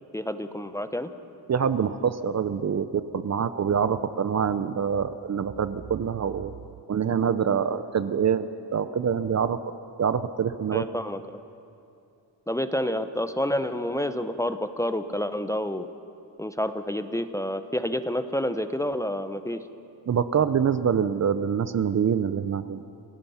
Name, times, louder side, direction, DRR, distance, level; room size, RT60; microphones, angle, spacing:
voice 1, 0.1-1.1 10.7-11.4 12.5-15.9 16.4-19.6, left 1 dB, 5° left, 10 dB, 0.8 m, -29 dB
voice 2, 1.5-6.5 6.9-9.6 10.0-10.8 20.1-22.8, right 7 dB, 40° right, 12 dB, 0.7 m, -25 dB
28.5 x 15.5 x 5.8 m, 2.6 s
cardioid pair, 90°, 41 cm